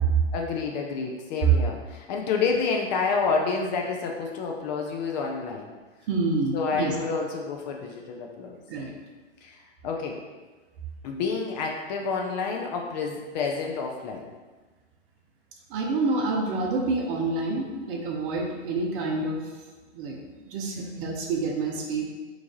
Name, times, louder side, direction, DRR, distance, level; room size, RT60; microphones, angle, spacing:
voice 1, 0.0-5.7 6.5-8.6 9.4-10.2 11.0-14.3, left 5 dB, 40° left, 1 dB, 0.4 m, -29 dB
voice 2, 6.1-7.0 8.7-8.9 15.7-19.4 19.9-20.2 20.5-22.0, right 4 dB, 45° right, 0 dB, 0.8 m, -27 dB
3.1 x 2.5 x 3.6 m, 1.3 s
hypercardioid pair, 115°, 35 cm